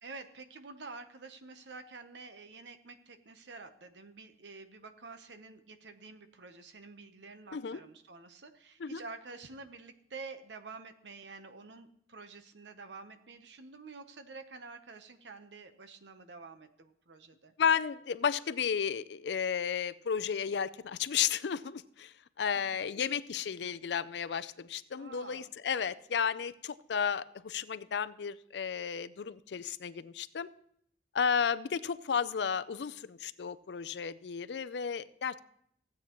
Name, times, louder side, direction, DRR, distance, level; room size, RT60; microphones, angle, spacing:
voice 1, 0.0-17.5 22.4-22.6 22.9-23.1 24.9-25.5, right 4 dB, 90° right, 9 dB, 0.9 m, -49 dB
voice 2, 17.6-30.5 31.1-35.4, left 7 dB, 75° left, 15 dB, 0.4 m, -33 dB
16.0 x 8.5 x 3.0 m, 0.70 s
head